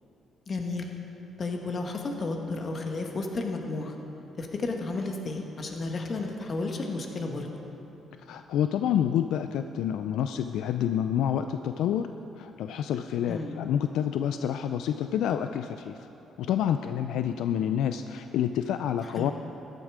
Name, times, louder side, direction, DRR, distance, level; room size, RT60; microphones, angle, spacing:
voice 1, 0.5-0.9 1.4-4.0 4.4-7.5 13.3-13.6 19.1-19.3, left 3 dB, 45° left, 2 dB, 1.7 m, -32 dB
voice 2, 8.3-12.1 12.4-16.0 16.4-19.3, left 9 dB, 85° left, 8 dB, 0.3 m, -28 dB
14.0 x 10.5 x 5.0 m, 3.0 s
cardioid pair, 90°, 0 cm